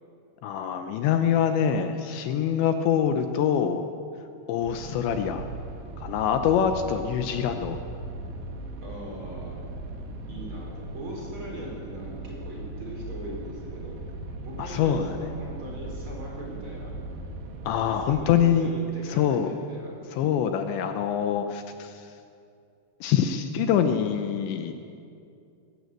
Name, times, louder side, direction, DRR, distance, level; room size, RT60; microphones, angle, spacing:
voice 1, 0.4-3.8 4.5-5.5 6.0-7.8 14.6-15.2 17.7-18.7 19.1-19.5 20.1-22.1 23.0-24.7, left 8 dB, 75° left, 7 dB, 3.0 m, -25 dB
sound 1, 4.6-18.3, right 2 dB, 65° right, 3.5 m, -38 dB
voice 2, 8.8-9.6 10.3-14.0 14.4-16.9 18.1-19.9, right 1 dB, 25° right, -2 dB, 5.1 m, -40 dB
20.0 x 17.5 x 8.0 m, 2.5 s
omnidirectional pair, 5.5 m